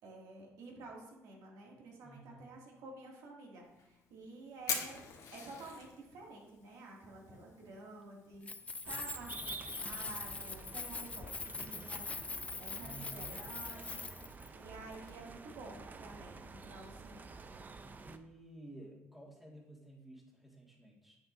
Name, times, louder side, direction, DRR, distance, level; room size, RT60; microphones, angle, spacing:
voice 1, 0.0-5.0 5.3-14.1 14.5-17.4, right 2 dB, 85° right, -2 dB, 2.4 m, -51 dB
voice 2, 2.0-2.5 12.8-13.3 18.0-21.2, right 1 dB, 5° right, -3 dB, 2.0 m, -53 dB
Fire, 3.6-15.1, left 6 dB, 70° left, 1.4 m, -48 dB
Keys jangling, 8.3-14.5, left 4 dB, 20° left, 0.4 m, -43 dB
sound 1, 8.8-18.2, right 4 dB, 30° right, 0.5 m, -50 dB
8.7 x 7.9 x 2.7 m, 0.91 s
cardioid pair, 105°, 6 cm